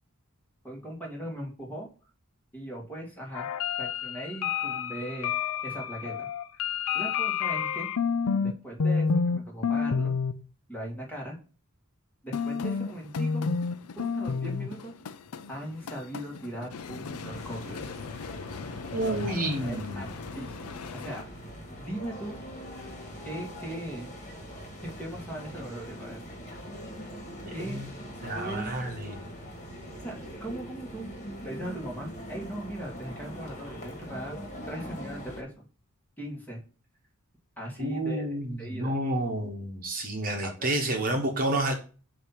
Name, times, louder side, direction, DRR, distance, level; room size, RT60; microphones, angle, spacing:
voice 1, 0.6-1.9 2.5-3.5 3.8-5.3 5.6-6.3 6.5-7.9 8.4-10.1 10.7-11.4 12.2-13.5 14.0-14.9 15.5-17.8 19.0-19.3 19.6-20.7 20.9-21.3 21.8-22.4 23.2-24.1 24.8-26.2 27.5-27.8 28.3-28.7 30.0-31.1 31.4-34.4 34.7-35.6 36.2-36.6 37.6-38.9 40.4-40.7, right 1 dB, 10° left, -1 dB, 1.9 m, -39 dB
sound 1, 3.3-8.5 8.8-9.4 9.6-10.3 12.3-21.2, left 5 dB, 85° left, 0.5 m, -30 dB
sound 2, 17.3-35.4, equal, 35° left, 2.0 m, -42 dB
voice 2, 18.9-20.0 27.5-27.9 28.2-29.2 37.8-41.7, right 1 dB, 40° right, 2 dB, 1.2 m, -30 dB
7.8 x 2.9 x 5.8 m, 0.37 s
head